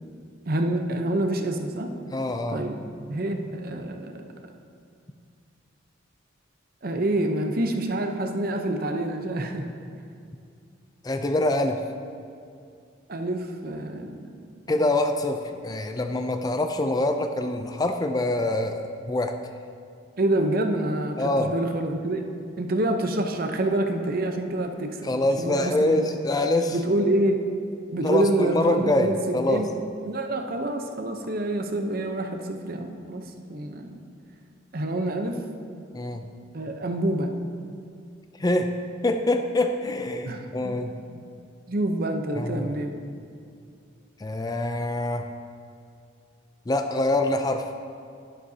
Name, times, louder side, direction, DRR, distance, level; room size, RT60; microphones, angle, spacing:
voice 1, 0.5-1.9 2.5-4.2 6.8-9.7 13.1-14.4 20.2-22.2 22.6-25.1 25.4-26.1 26.7-27.4 27.9-29.7 30.1-34.0 34.7-35.4 36.5-37.3 40.2-41.2 41.7-43.0, right 1 dB, 50° right, 5 dB, 0.7 m, -27 dB
voice 2, 2.1-2.6 11.0-11.8 14.7-19.3 21.2-21.5 25.0-26.8 28.0-29.6 35.9-36.2 38.4-38.7 39.0-40.9 42.4-42.7 44.2-45.3 46.7-47.7, left 2 dB, 20° left, 6 dB, 0.4 m, -25 dB
11.5 x 11.0 x 2.8 m, 2.4 s
head